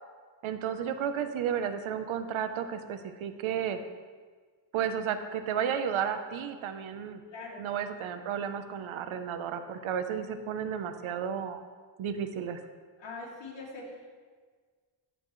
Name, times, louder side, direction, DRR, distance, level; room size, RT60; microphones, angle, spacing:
voice 1, 0.4-3.8 4.7-7.2 7.6-11.6 12.0-12.6, right 8 dB, 80° right, 8 dB, 1.0 m, -33 dB
voice 2, 7.3-7.7 13.0-14.1, left 3 dB, 60° left, -3 dB, 3.0 m, -42 dB
15.0 x 9.1 x 3.2 m, 1.5 s
cardioid pair, 145°, 48 cm